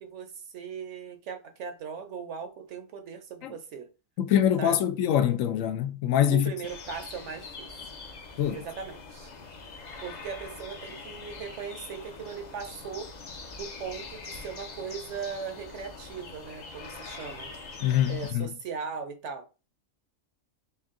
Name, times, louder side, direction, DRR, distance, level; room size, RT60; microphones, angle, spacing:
voice 1, 0.0-3.9 4.6-4.8 6.3-7.7 8.5-9.3 10.0-13.1 13.6-17.5 18.1-19.5, right 6 dB, 65° right, 1.0 m, -38 dB
voice 2, 4.2-6.5 8.4-8.6 17.8-18.5, left 10 dB, 80° left, 1.0 m, -24 dB
sound 1, 6.6-18.3, left 4 dB, 45° left, 0.6 m, -43 dB
4.4 x 2.3 x 3.6 m
omnidirectional pair, 1.4 m